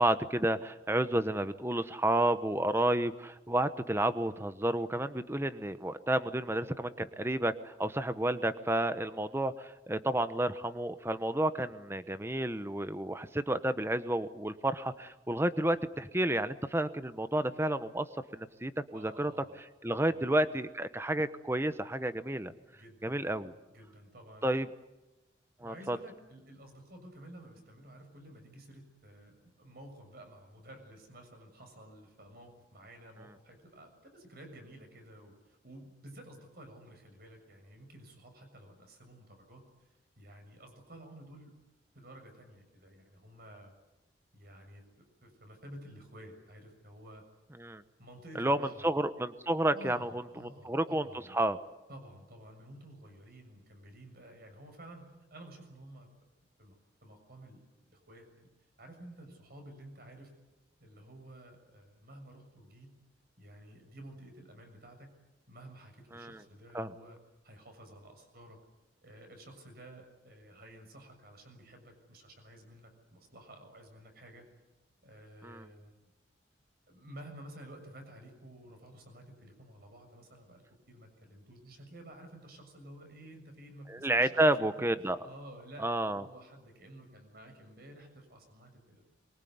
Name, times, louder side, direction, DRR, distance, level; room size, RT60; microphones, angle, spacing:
voice 1, 0.0-18.1 18.3-19.3 19.8-22.5 23.0-23.5 24.4-24.7 25.6-26.0 47.6-47.8 48.4-48.6 48.8-50.1 50.6-51.0 51.3-51.6 66.1-66.4 66.7-66.9 75.4-75.7 83.9-85.2 85.8-86.2, right 1 dB, 15° right, 12 dB, 1.1 m, -30 dB
voice 2, 18.9-19.6 20.0-20.2 22.7-24.6 25.6-39.6 40.2-41.5 41.9-43.7 44.3-47.2 48.0-48.9 49.7-51.4 51.9-56.1 56.6-56.7 57.0-58.5 58.8-60.3 60.8-62.9 63.4-65.1 65.5-67.2 67.4-68.6 69.0-74.5 75.0-76.0 76.9-89.0, right 1 dB, 60° right, 5 dB, 6.8 m, -52 dB
24.0 x 23.0 x 9.6 m, 1.0 s
head